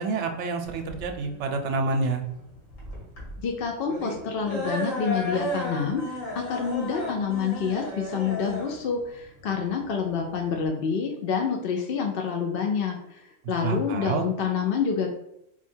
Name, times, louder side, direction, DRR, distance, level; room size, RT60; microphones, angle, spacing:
voice 1, 0.0-2.2 13.6-14.3, right 3 dB, 65° right, 5 dB, 0.9 m, -28 dB
sound 1, 0.6-10.7, equal, 75° left, 1.8 m, -35 dB
voice 2, 3.4-15.1, left 6 dB, 60° left, 2 dB, 0.6 m, -28 dB
4.3 x 2.3 x 4.3 m, 0.78 s
omnidirectional pair, 1.3 m